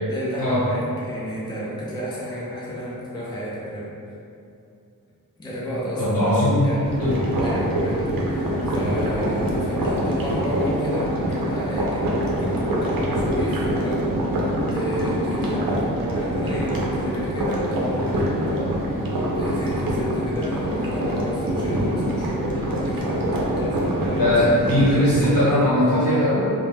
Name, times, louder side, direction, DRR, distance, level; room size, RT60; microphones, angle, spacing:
voice 1, 0.1-3.9 5.4-7.1 7.4-14.2 14.7-18.8 19.4-24.8, equal, 15° left, -7 dB, 0.4 m, -31 dB
voice 2, 6.0-6.7 7.0-7.2 24.2-26.4, left 1 dB, 70° left, -10 dB, 1.2 m, -19 dB
sound 1, 6.8-25.5, equal, 75° right, 0.5 m, -25 dB
2.4 x 2.1 x 3.2 m, 2.6 s
wide cardioid pair, 95°, 35 cm